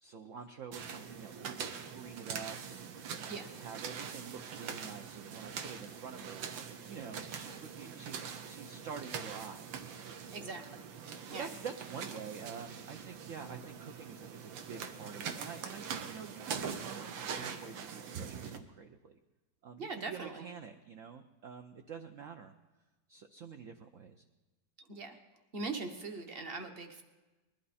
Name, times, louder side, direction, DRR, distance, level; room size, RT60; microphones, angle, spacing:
voice 1, 0.0-6.4 6.9-10.4 11.3-19.2 19.6-22.5 23.1-24.2, right 6 dB, 65° right, 5 dB, 0.8 m, -47 dB
sound 1, 0.7-18.6, right 7 dB, 85° right, 1.7 m, -43 dB
voice 2, 10.3-10.8 11.3-11.5 19.8-20.5 24.8-25.2 25.5-27.0, right 3 dB, 35° right, 5 dB, 1.1 m, -41 dB
20.5 x 12.0 x 4.2 m, 1.1 s
omnidirectional pair, 2.0 m